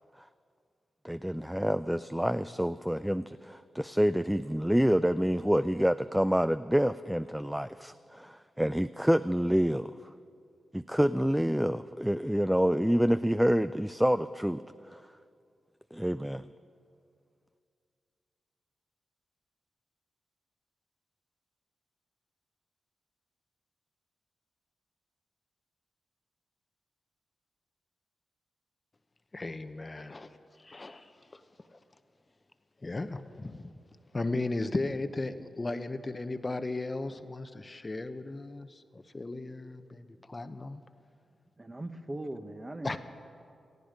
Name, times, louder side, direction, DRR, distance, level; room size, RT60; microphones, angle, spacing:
voice 1, 1.0-9.9 10.7-14.6 14.9-15.0 15.9-16.5, equal, 5° right, 13 dB, 0.4 m, -27 dB
voice 2, 29.3-30.3 30.6-31.1 31.3-31.4 32.8-33.7 34.1-40.8 42.8-43.0, left 2 dB, 35° left, 10 dB, 0.9 m, -36 dB
voice 3, 41.6-43.0, right 1 dB, 25° right, 8 dB, 1.2 m, -39 dB
17.5 x 15.0 x 5.1 m, 2.4 s
supercardioid pair, 50°, 0 cm